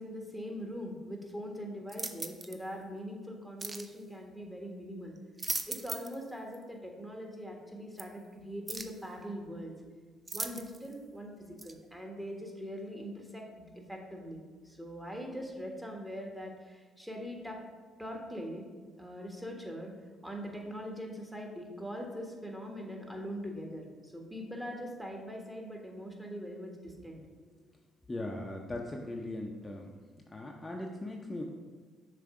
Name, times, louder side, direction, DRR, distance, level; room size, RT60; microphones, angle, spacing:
voice 1, 0.0-5.2 5.7-9.7 10.3-17.6 18.0-18.6 19.0-19.9 20.2-27.2, equal, 10° right, 1 dB, 1.5 m, -42 dB
sound 1, 1.9-2.6 3.6-3.9 5.2-6.2 6.5-6.6 8.0-8.1 8.7-9.0 10.3-10.9 11.6-11.7, right 2 dB, 25° right, 0.5 m, -38 dB
voice 2, 28.1-30.0 30.3-31.4, left 1 dB, 20° left, 0 dB, 0.7 m, -39 dB
6.9 x 3.3 x 4.9 m, 1.4 s
hypercardioid pair, 55°, 0 cm